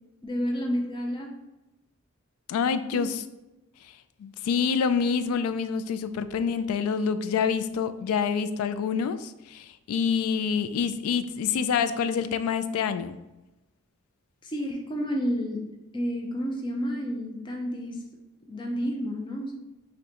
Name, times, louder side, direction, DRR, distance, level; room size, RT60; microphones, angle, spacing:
voice 1, 0.2-1.3 2.9-3.0 14.4-15.6 15.9-18.0 18.5-19.6, equal, 20° left, 0 dB, 0.4 m, -30 dB
voice 2, 2.5-3.2 3.8-3.9 4.2-13.1, left 6 dB, 85° left, 14 dB, 0.3 m, -27 dB
6.0 x 2.2 x 2.9 m, 0.98 s
head